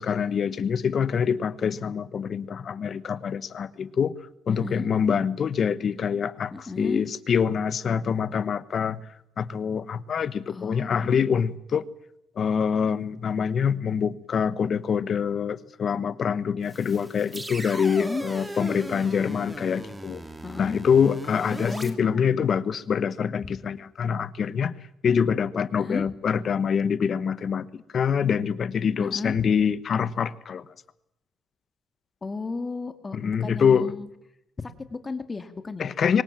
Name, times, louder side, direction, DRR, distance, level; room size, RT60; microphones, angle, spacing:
voice 1, 0.0-4.1 4.5-9.0 9.4-11.9 12.4-20.2 20.6-24.7 25.0-30.6 33.1-33.9 35.8-36.2, left 7 dB, 55° left, 16 dB, 1.1 m, -25 dB
voice 2, 4.5-4.8 6.5-7.0 10.5-11.2 17.9-18.3 20.4-20.8 21.6-22.2 25.8-26.1 29.0-29.3 32.2-34.1 34.6-35.8, left 3 dB, 30° left, 9 dB, 2.3 m, -34 dB
sound 1, 16.6-21.9, right 2 dB, 15° right, 2.3 m, -38 dB
24.0 x 19.5 x 7.5 m, 0.81 s
cardioid pair, 90°, 0 cm